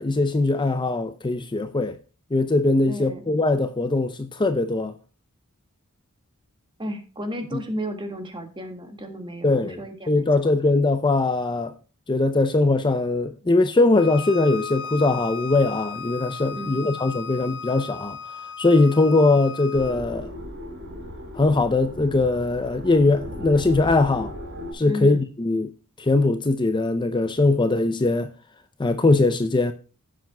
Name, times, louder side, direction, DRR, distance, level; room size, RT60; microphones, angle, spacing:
voice 1, 0.0-2.0 2.3-4.9 7.5-7.6 9.4-9.8 10.1-11.7 12.1-18.2 18.6-20.3 21.4-24.3 24.7-25.7 26.0-28.3 28.8-29.7, left 2 dB, 20° left, 0.6 m, -21 dB
voice 2, 2.8-3.2 6.8-10.3 16.5-16.9 24.8-25.2, equal, 20° right, 1.8 m, -33 dB
Bowed string instrument, 13.9-20.0, left 6 dB, 60° left, 0.8 m, -36 dB
sound 1, 19.7-24.7, left 1 dB, 55° right, 3.7 m, -36 dB
16.0 x 7.6 x 2.2 m
head